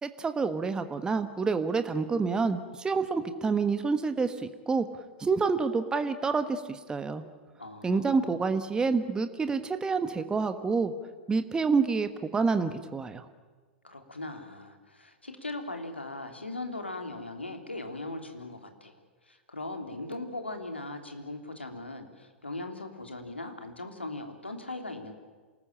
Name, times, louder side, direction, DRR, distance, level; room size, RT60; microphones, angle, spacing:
voice 1, 0.0-4.9 5.2-7.2 7.8-10.9 11.3-13.2, right 4 dB, 15° right, 10 dB, 1.3 m, -28 dB
voice 2, 7.6-8.4 13.8-18.9 19.2-25.1, left 2 dB, 85° left, 5 dB, 3.2 m, -39 dB
27.5 x 19.5 x 8.8 m, 1.4 s
figure-of-eight pair, 95°, 6 cm